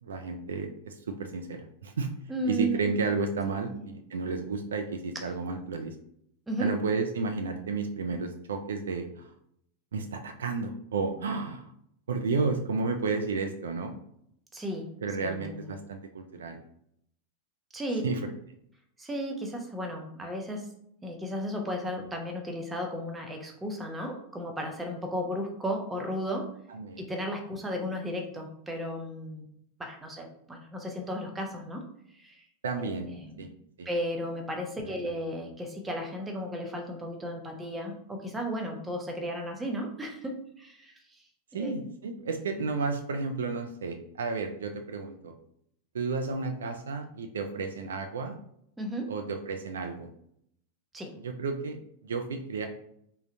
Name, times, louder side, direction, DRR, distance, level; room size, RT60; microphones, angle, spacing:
voice 1, 0.0-2.1 2.5-5.9 6.6-9.3 9.9-11.7 12.1-14.0 15.0-16.6 18.0-18.2 26.7-27.0 32.6-33.1 33.4-33.5 33.8-33.9 34.8-35.1 41.5-45.3 45.9-48.4 49.1-50.1 51.2-51.8 52.0-52.7, right 4 dB, 65° right, 5 dB, 0.3 m, -32 dB
voice 2, 2.3-2.9 3.6-3.8 6.5-6.7 14.5-14.9 15.2-15.7 17.7-18.0 19.0-20.7 21.0-26.5 27.0-29.5 29.8-31.8 32.1-32.4 32.7-33.5 33.9-40.9 41.5-41.7 48.8-49.1 50.9-51.1, equal, 10° right, 2 dB, 0.6 m, -34 dB
3.6 x 2.1 x 2.7 m, 0.71 s
figure-of-eight pair, 90°, 0 cm